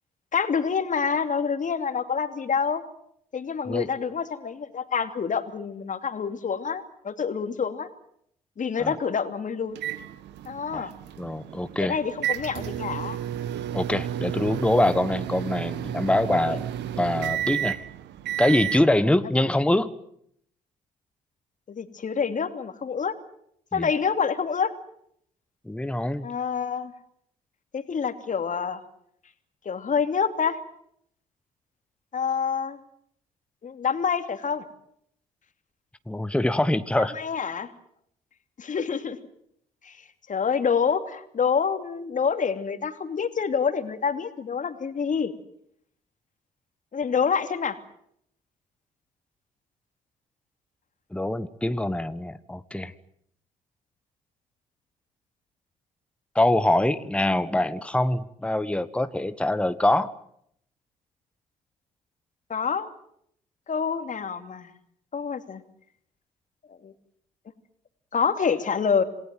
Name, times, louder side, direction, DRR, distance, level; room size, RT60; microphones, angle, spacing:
voice 1, 0.3-2.8 3.3-7.9 8.6-9.8 10.5-10.9 11.8-13.2 16.5-16.6 21.7-23.1 23.7-24.7 26.2-26.9 27.7-28.8 29.6-30.6 32.1-32.8 33.6-34.6 37.1-37.7 38.6-39.2 39.8-40.0 40.3-45.3 46.9-47.8 62.5-62.9 63.7-64.7 65.1-65.6 66.8-66.9 68.1-69.0, left 6 dB, 40° left, 9 dB, 2.8 m, -27 dB
sound 1, 9.7-18.9, right 11 dB, 65° right, 1.6 m, -32 dB
voice 2, 11.2-12.0 13.7-16.7 17.0-17.8 18.4-19.9 23.7-23.9 25.6-26.3 36.1-37.1 51.1-52.9 56.3-60.1, left 1 dB, 5° left, 13 dB, 1.4 m, -24 dB
27.5 x 19.0 x 9.3 m, 0.72 s
hypercardioid pair, 45°, 19 cm